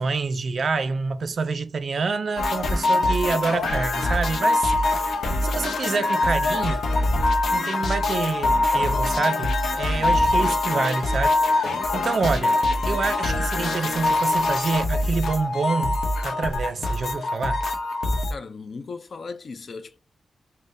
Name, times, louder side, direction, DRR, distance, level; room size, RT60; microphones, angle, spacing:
voice 1, 0.0-4.7 5.4-6.8 7.5-12.6 12.9-16.0 16.2-17.6, right 4 dB, 55° right, 0.4 m, -27 dB
sound 1, 2.4-18.3, left 2 dB, 80° left, 0.7 m, -23 dB
voice 2, 18.3-20.0, left 4 dB, 55° left, 0.4 m, -37 dB
5.3 x 2.0 x 2.6 m
wide cardioid pair, 130°, 0 cm